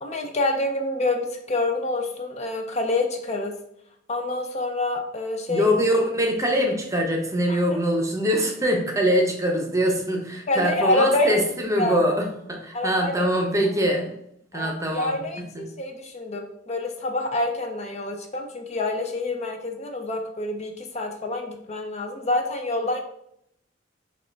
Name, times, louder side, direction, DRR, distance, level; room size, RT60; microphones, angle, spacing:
voice 1, 0.0-3.5 4.1-5.7 7.5-7.6 10.5-11.4 11.8-12.1 12.7-13.1 13.6-13.7 14.5-23.0, left 2 dB, 35° left, 3 dB, 0.5 m, -27 dB
voice 2, 5.5-14.1 14.5-15.2 15.5-15.6, equal, 15° right, 2 dB, 0.7 m, -23 dB
4.7 x 2.4 x 4.4 m, 0.73 s
head